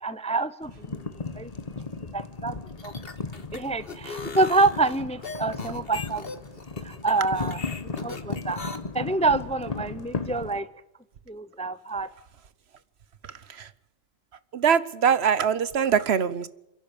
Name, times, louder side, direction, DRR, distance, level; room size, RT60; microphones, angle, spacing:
voice 1, 0.0-1.0 1.4-1.5 2.1-2.6 2.8-2.9 3.5-6.3 6.8-7.6 8.0-8.6 8.9-10.7 11.3-12.1, right 3 dB, 10° left, 0.5 m, -26 dB
sound 1, 0.6-10.6, left 4 dB, 35° left, 1.3 m, -36 dB
sound 2, 2.7-8.8, left 4 dB, 60° left, 1.8 m, -39 dB
voice 2, 14.5-16.5, right 7 dB, 70° right, 1.2 m, -23 dB
28.5 x 11.0 x 8.9 m
omnidirectional pair, 1.1 m